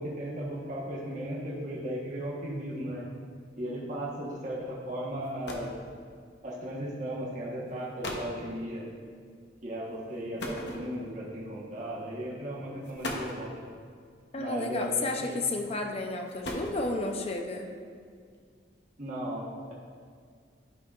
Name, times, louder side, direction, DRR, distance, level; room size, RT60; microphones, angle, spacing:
voice 1, 0.0-3.0 3.6-5.7 6.4-8.9 9.6-13.5 14.4-15.4 19.0-19.7, right 1 dB, 40° right, -6 dB, 1.3 m, -36 dB
sound 1, 4.9-5.0 5.2-5.8 6.8-7.0 7.7-7.8 8.0-8.4 10.4-11.2 12.2-12.3 12.8-13.5 14.8-15.3 16.1-17.1, left 1 dB, 65° left, 0.9 m, -38 dB
voice 2, 14.3-17.7, left 2 dB, 30° left, 3 dB, 0.6 m, -31 dB
12.0 x 5.6 x 2.5 m, 2.1 s
head